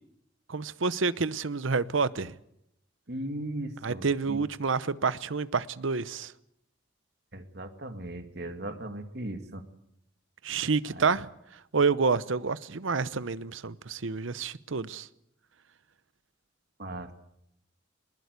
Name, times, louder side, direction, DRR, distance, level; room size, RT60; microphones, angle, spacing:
voice 1, 0.5-2.4 3.8-6.3 10.4-11.3 11.7-15.1, right 4 dB, 70° right, 0.8 m, -28 dB
voice 2, 3.1-4.5 7.3-9.6 10.9-11.2 16.8-17.1, right 1 dB, 50° right, 2.2 m, -38 dB
21.0 x 20.0 x 8.2 m
head